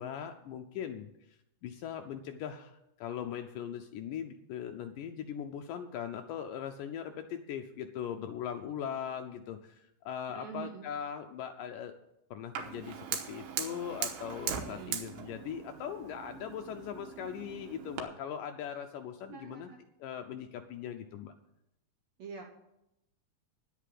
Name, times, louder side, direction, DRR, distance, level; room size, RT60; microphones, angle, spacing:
voice 1, 0.0-11.9 12.3-19.7 20.0-21.3, left 9 dB, 85° left, 6 dB, 1.9 m, -40 dB
voice 2, 10.3-10.9 14.7-15.0 19.3-19.8 22.2-22.5, right 6 dB, 70° right, 2 dB, 1.6 m, -45 dB
Fire, 12.6-18.0, right 8 dB, 90° right, 3.2 m, -40 dB
10.5 x 8.4 x 7.6 m, 0.85 s
omnidirectional pair, 4.5 m